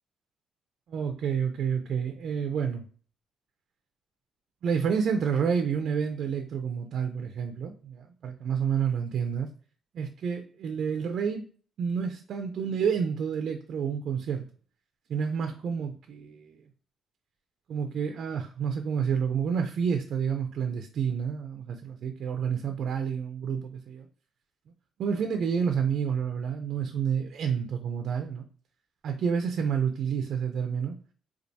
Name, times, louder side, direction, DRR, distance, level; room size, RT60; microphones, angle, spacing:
voice 1, 0.9-2.8 4.6-9.5 9.9-11.4 11.8-14.4 15.1-16.6 17.7-24.1 25.0-28.4 29.0-31.0, right 7 dB, 65° right, 5 dB, 0.4 m, -29 dB
4.5 x 2.3 x 2.7 m, 0.43 s
cardioid pair, 90°, 0 cm